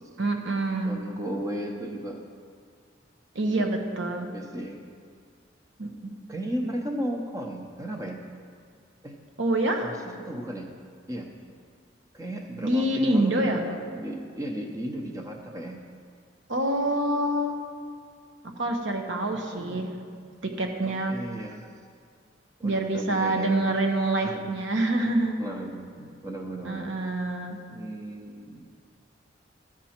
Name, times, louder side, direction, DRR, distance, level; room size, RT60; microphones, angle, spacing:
voice 1, 0.2-1.0 3.3-4.3 5.8-6.2 9.4-9.9 12.6-13.6 16.5-17.6 18.4-19.9 20.4-21.2 22.6-25.4 26.6-27.6, right 1 dB, 85° right, 3 dB, 1.0 m, -26 dB
voice 2, 0.8-2.2 3.4-3.7 4.2-4.8 6.3-8.2 9.0-9.2 9.8-10.7 11.1-11.3 12.1-15.8 19.3-19.9 20.8-21.6 22.6-23.8 24.2-24.4 25.0-25.1 25.4-26.9 27.7-28.7, right 1 dB, 20° right, 2 dB, 0.7 m, -35 dB
13.0 x 6.1 x 4.4 m, 2.2 s
head